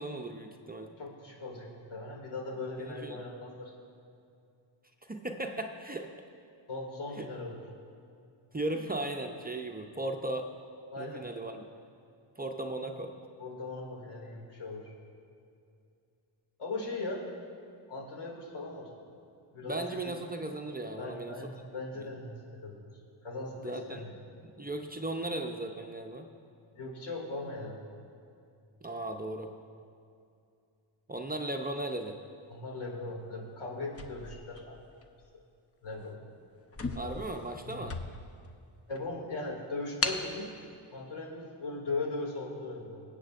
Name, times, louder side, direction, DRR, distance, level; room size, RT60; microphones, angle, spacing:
voice 1, 0.0-0.9 2.9-3.2 5.1-6.1 7.2-7.3 8.5-10.5 11.0-11.5 12.4-13.1 19.6-21.4 23.6-24.1 24.4-26.3 28.8-29.5 31.1-32.2 37.0-38.0, right 2 dB, 20° right, 4 dB, 0.6 m, -36 dB
voice 2, 1.0-3.7 6.7-7.6 10.9-11.2 13.4-14.9 16.6-17.2 17.9-18.9 19.5-20.2 21.0-22.9 23.2-24.2 26.7-27.8 32.5-34.8 35.8-36.2 37.6-37.9 38.9-40.5 40.9-43.0, left 2 dB, 80° left, -2 dB, 2.6 m, -39 dB
sound 1, 33.9-35.2 35.9-36.1 36.4-36.5 36.7-38.5 38.9-39.0 40.0-40.3, left 3 dB, 30° left, 0.7 m, -36 dB
22.5 x 8.2 x 2.5 m, 2.5 s
cardioid pair, 75°, 49 cm